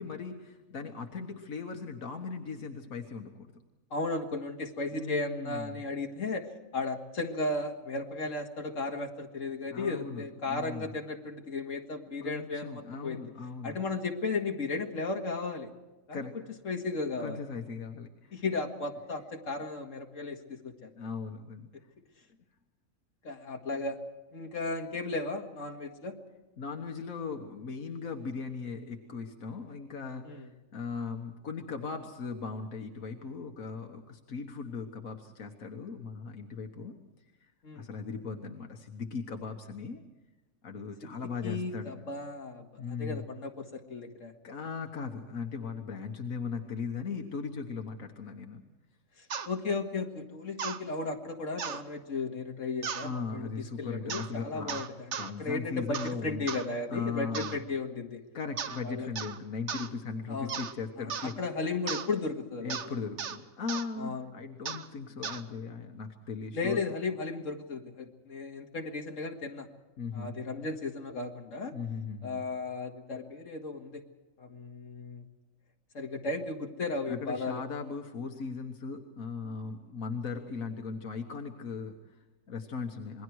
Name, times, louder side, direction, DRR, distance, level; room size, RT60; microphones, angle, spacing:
voice 1, 0.0-3.5 4.9-5.8 9.7-11.0 12.2-13.8 16.1-16.4 17.2-18.4 21.0-21.7 26.6-36.9 37.4-40.0 40.6-41.9 42.8-43.3 44.4-48.6 51.7-51.8 53.0-54.8 55.1-56.4 56.9-57.5 58.3-61.4 62.6-66.8 70.0-70.4 71.7-72.4 77.1-83.2, left 5 dB, 90° left, 4 dB, 1.8 m, -38 dB
voice 2, 3.9-13.2 13.6-15.7 16.1-16.2 16.6-17.4 18.3-20.9 23.2-24.0 24.3-26.1 30.2-30.5 37.6-37.9 41.4-44.3 49.2-54.9 55.4-58.2 58.8-59.1 60.3-60.5 61.0-61.1 61.4-62.8 64.0-64.3 66.5-69.7 70.1-71.7 72.2-74.0 74.4-75.2 75.9-77.6, left 3 dB, 70° left, 2 dB, 2.3 m, -35 dB
sound 1, 49.3-49.5 50.6-50.8 51.6-51.8 52.8-53.1 54.1-54.3 54.7-55.3 55.9-56.2 56.5-56.7 57.3-57.6 58.6-58.8 59.2-59.4 59.7-59.9 60.5-60.7 61.1-61.3 61.9-62.1 62.7-62.9 63.2-63.4 63.7-63.9 64.7-64.9 65.2-65.4, right 7 dB, 60° right, 1.2 m, -36 dB
27.5 x 21.5 x 4.7 m, 1.1 s
omnidirectional pair, 1.4 m